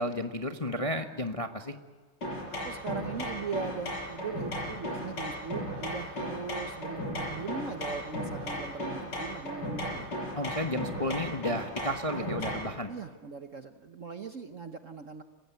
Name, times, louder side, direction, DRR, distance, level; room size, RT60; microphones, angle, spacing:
voice 1, 0.0-1.7 10.4-12.9, left 1 dB, 25° left, 6 dB, 0.8 m, -32 dB
sound 1, 2.2-12.7, equal, 50° left, 7.1 m, -36 dB
voice 2, 2.5-10.0 12.0-12.4 12.9-15.2, right 5 dB, 50° right, 8 dB, 1.1 m, -39 dB
29.0 x 16.0 x 9.4 m, 1.5 s
omnidirectional pair, 2.3 m